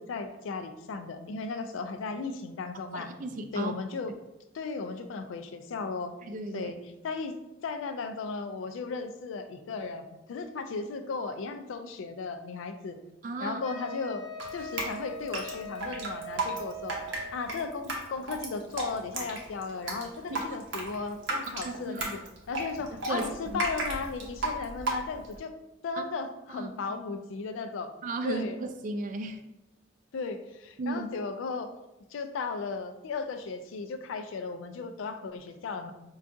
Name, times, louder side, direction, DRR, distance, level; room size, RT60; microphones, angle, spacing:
voice 1, 0.0-3.1 3.5-4.1 4.5-6.1 6.5-6.8 7.0-7.3 7.6-13.0 13.4-14.2 14.5-17.0 17.3-22.2 22.5-25.5 25.8-28.0 28.2-28.6 30.1-31.7 32.1-35.9, left 4 dB, 85° left, 8 dB, 0.4 m, -35 dB
voice 2, 2.9-3.7 6.2-6.7 13.2-13.6 21.6-22.0 23.1-23.6 26.5-26.7 28.0-29.4 30.8-31.1, right 2 dB, 45° right, 7 dB, 0.3 m, -34 dB
Wind instrument woodwind instrument, 13.6-17.5, equal, 20° left, 0.5 m, -41 dB
Drip, 14.4-25.4, right 2 dB, 75° right, 0.7 m, -34 dB
4.6 x 2.3 x 2.6 m, 0.94 s
head